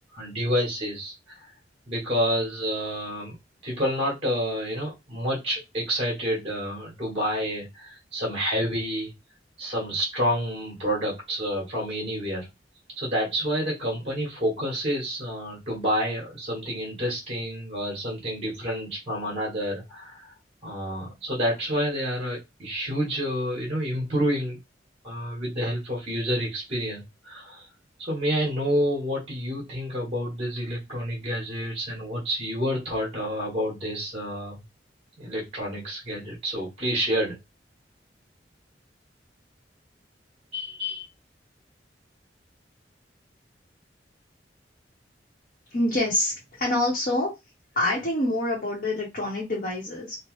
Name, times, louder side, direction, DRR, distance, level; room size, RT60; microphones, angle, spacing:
voice 1, 0.1-1.5 1.9-3.3 3.6-9.1 9.6-12.5 13.0-20.3 20.6-24.6 25.0-27.7 28.1-34.6 35.2-37.4 40.5-41.0, equal, 30° right, -3 dB, 1.2 m, -29 dB
voice 2, 45.7-47.3 47.7-50.2, left 1 dB, 50° left, -4 dB, 0.9 m, -26 dB
3.1 x 2.0 x 3.0 m, 0.22 s
head